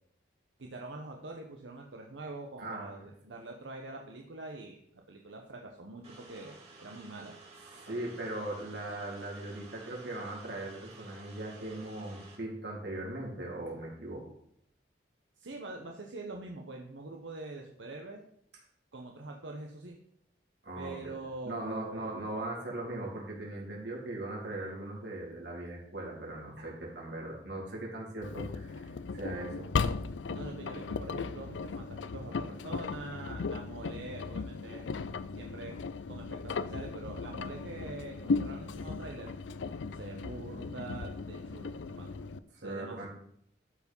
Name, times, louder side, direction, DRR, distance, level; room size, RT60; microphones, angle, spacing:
voice 1, 0.6-7.4 15.4-18.2 18.9-20.0 20.8-22.1 30.3-34.9 35.4-35.8 36.1-39.3 39.9-42.1 42.6-43.1, right 2 dB, 90° right, 1 dB, 1.0 m, -44 dB
voice 2, 2.6-3.0 7.7-14.2 20.6-21.1 21.4-29.7 42.5-43.1, right 2 dB, 65° right, -3 dB, 3.6 m, -39 dB
sound 1, 6.0-12.4, right 3 dB, 35° right, 2.8 m, -53 dB
Engine, 28.2-42.4, left 4 dB, 90° left, 0.5 m, -37 dB
12.5 x 4.8 x 5.5 m, 0.70 s
head